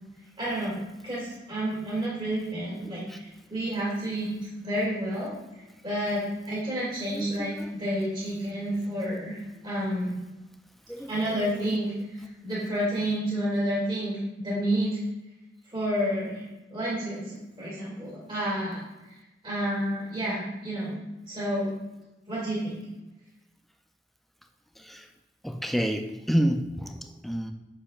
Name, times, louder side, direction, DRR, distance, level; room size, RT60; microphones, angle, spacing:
voice 1, 0.4-5.3 5.8-10.1 11.1-15.0 15.7-16.5 16.7-18.8 19.4-21.0 21.3-21.7 22.3-22.8, right 1 dB, 30° right, -6 dB, 2.1 m, -30 dB
voice 2, 2.8-3.2 7.1-7.7 10.9-11.8 24.8-25.1 25.4-27.5, equal, ahead, 5 dB, 0.4 m, -30 dB
7.3 x 6.8 x 2.4 m, 1.0 s
head